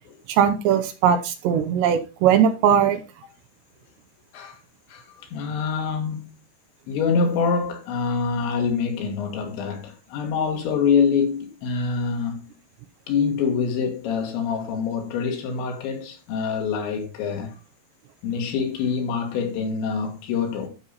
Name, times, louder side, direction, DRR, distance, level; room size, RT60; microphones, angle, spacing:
voice 1, 0.3-3.0, right 8 dB, 80° right, 2.8 m, -19 dB
voice 2, 4.9-6.3 6.9-12.5 13.1-17.6 18.2-20.7, left 5 dB, 75° left, 4.0 m, -25 dB
12.5 x 5.6 x 4.1 m
omnidirectional pair, 5.4 m